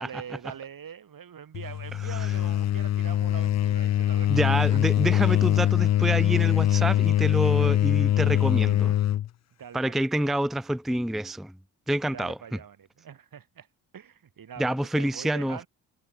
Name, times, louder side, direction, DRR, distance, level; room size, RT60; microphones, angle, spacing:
voice 1, 0.0-4.8 9.6-10.3 12.1-13.7 13.9-15.7, right 8 dB, 55° right, 6.7 m, -43 dB
sound 1, 1.5-9.3, left 12 dB, 45° left, 0.5 m, -23 dB
voice 2, 4.3-8.9 9.7-11.5 11.9-12.4 14.6-15.6, right 1 dB, ahead, 0.6 m, -27 dB
cardioid pair, 75°, 39 cm